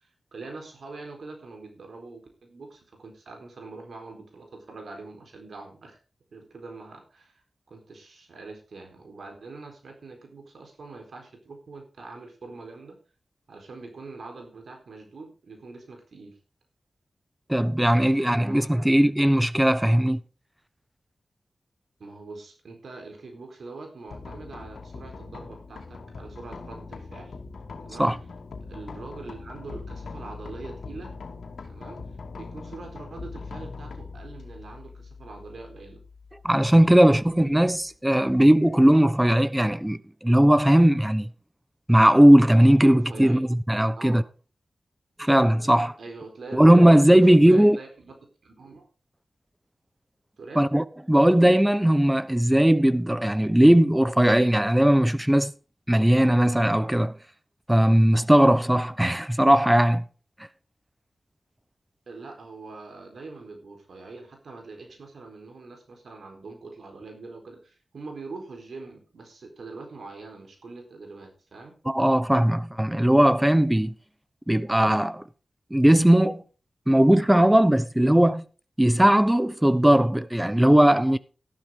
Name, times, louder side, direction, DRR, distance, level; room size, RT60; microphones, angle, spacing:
voice 1, 0.0-6.0 6.3-7.4 7.7-13.0 13.5-16.4 17.9-18.9 22.0-27.3 27.8-28.2 28.6-31.2 31.7-32.0 32.3-36.0 37.0-37.3 42.8-43.4 44.0-44.3 46.0-48.1 48.4-48.9 50.4-50.7 62.1-71.7, right 3 dB, 75° right, 4.1 m, -43 dB
voice 2, 17.5-20.2 28.0-28.2 36.4-41.3 41.9-44.2 45.2-45.9 46.5-47.8 50.6-55.5 55.9-57.1 57.7-60.0 71.9-73.9 74.5-75.2 75.7-76.4 76.9-78.4 78.8-81.2, right 1 dB, 10° right, 0.9 m, -18 dB
sound 1, 24.1-37.9, left 4 dB, 80° left, 2.4 m, -42 dB
13.0 x 11.5 x 3.8 m
wide cardioid pair, 85°, 0 cm